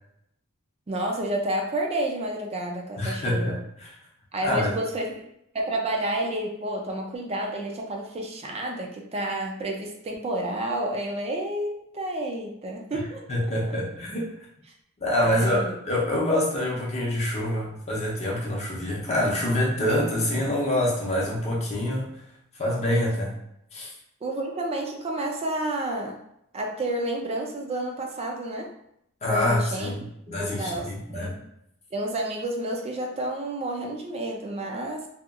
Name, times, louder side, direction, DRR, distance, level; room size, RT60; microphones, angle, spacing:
voice 1, 0.9-3.6 4.3-5.2 5.5-13.2 15.2-15.7 24.2-26.2 26.5-28.7 29.2-31.4 31.9-35.1, right 1 dB, 25° right, 1 dB, 0.3 m, -30 dB
voice 2, 3.0-3.9 4.4-4.7 12.9-13.0 13.3-14.3 15.0-22.1 22.6-23.3 23.7-23.9 29.2-31.4, left 1 dB, 30° left, -4 dB, 0.6 m, -26 dB
2.8 x 2.3 x 2.3 m, 0.77 s
head